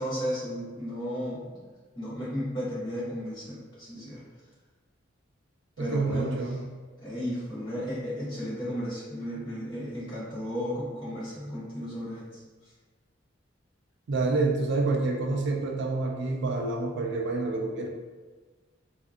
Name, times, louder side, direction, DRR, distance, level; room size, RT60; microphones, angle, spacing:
voice 1, 0.0-1.6 1.9-4.2 5.8-6.4 7.0-12.4, equal, 25° left, -11 dB, 1.5 m, -34 dB
voice 2, 5.8-6.6 14.1-17.9, right 3 dB, 65° right, 2 dB, 0.4 m, -28 dB
4.3 x 2.5 x 2.4 m, 1.4 s
head